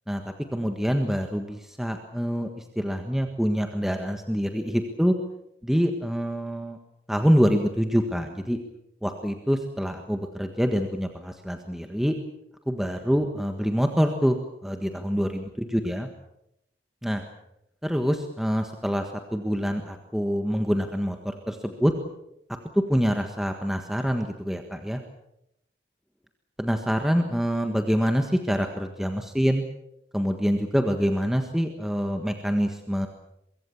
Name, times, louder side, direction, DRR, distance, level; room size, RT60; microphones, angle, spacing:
voice 1, 0.5-5.1 5.6-6.8 7.1-8.6 9.0-12.1 12.7-14.4 14.6-16.1 17.0-17.2 17.8-21.9 22.9-25.0 26.6-29.6 30.1-33.1, equal, ahead, 5 dB, 1.5 m, -25 dB
23.5 x 23.5 x 7.2 m, 0.81 s
head